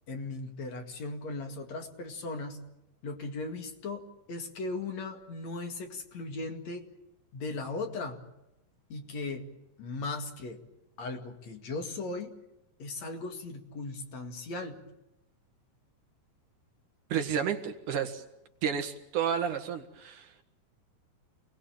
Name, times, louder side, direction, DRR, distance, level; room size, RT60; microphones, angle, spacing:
voice 1, 0.1-2.6 3.0-6.9 7.3-8.2 8.9-9.4 9.8-10.6 11.0-12.3 12.8-14.8, left 3 dB, 55° left, 4 dB, 3.3 m, -37 dB
voice 2, 17.1-18.2 18.6-20.4, right 8 dB, 65° right, 7 dB, 3.0 m, -31 dB
28.5 x 20.0 x 9.1 m, 0.89 s
omnidirectional pair, 3.9 m